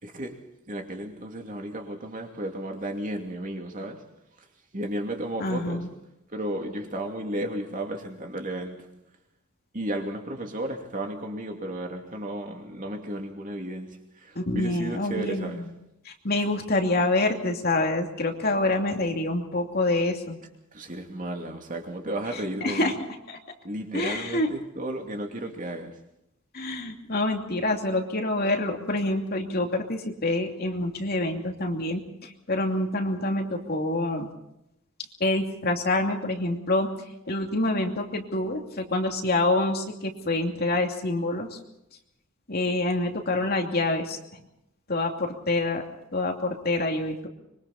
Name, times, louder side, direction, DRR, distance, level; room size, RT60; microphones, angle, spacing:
voice 1, 0.0-4.0 4.7-5.9 6.3-9.0 9.7-15.7 20.7-22.9 23.6-26.0, right 1 dB, 40° right, 2.7 m, -34 dB
voice 2, 5.4-5.9 14.3-15.6 16.0-20.4 22.6-22.9 23.3-23.4 23.9-24.5 26.5-34.3 35.2-36.9 37.3-41.6 42.5-44.2 44.9-45.8 46.1-47.3, left 2 dB, 45° left, 2.7 m, -26 dB
25.5 x 23.5 x 4.3 m
head